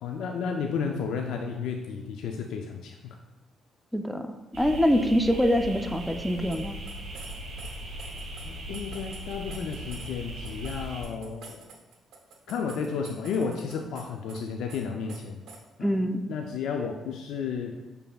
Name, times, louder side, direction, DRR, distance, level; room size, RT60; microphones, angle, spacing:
voice 1, 0.0-3.0 8.4-11.7 12.5-15.5 15.8-17.8, left 6 dB, 85° left, 3 dB, 0.3 m, -32 dB
voice 2, 3.9-6.8 15.8-16.2, equal, ahead, 6 dB, 0.4 m, -25 dB
sound 1, 4.5-11.0, right 1 dB, 65° right, 1.3 m, -39 dB
sound 2, 6.5-6.6 6.9-10.1 10.4-14.0 14.3-14.4 14.7-14.8 15.1-15.2 15.5-15.6, right 5 dB, 80° right, 0.7 m, -47 dB
6.7 x 3.3 x 2.3 m, 1.1 s
cardioid pair, 90°, 0 cm